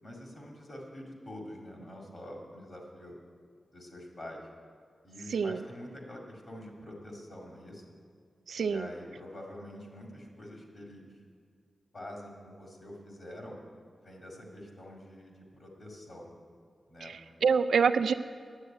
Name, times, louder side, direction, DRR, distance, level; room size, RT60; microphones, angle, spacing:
voice 1, 0.0-3.1 3.7-4.4 5.0-7.8 8.6-11.1 11.9-13.6 14.0-16.3 16.9-17.1 17.5-17.6, left 1 dB, 40° left, 0 dB, 2.3 m, -46 dB
voice 2, 8.5-8.9 17.0-18.1, right 6 dB, 90° right, 11 dB, 0.4 m, -26 dB
9.7 x 8.2 x 9.0 m, 2.1 s
wide cardioid pair, 140°, 0 cm